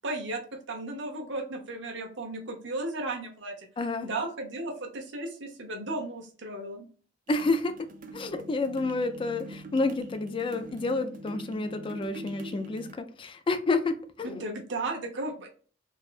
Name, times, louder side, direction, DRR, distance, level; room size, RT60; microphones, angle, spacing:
voice 1, 0.0-0.4 0.7-3.7 4.0-6.9 14.2-15.5, right 2 dB, 70° right, 2 dB, 0.8 m, -35 dB
voice 2, 3.8-4.1 7.3-14.4, left 3 dB, 30° left, 9 dB, 0.3 m, -30 dB
sound 1, 7.3-12.9, right 1 dB, 45° right, 0.4 m, -44 dB
3.4 x 2.3 x 2.4 m, 0.40 s
head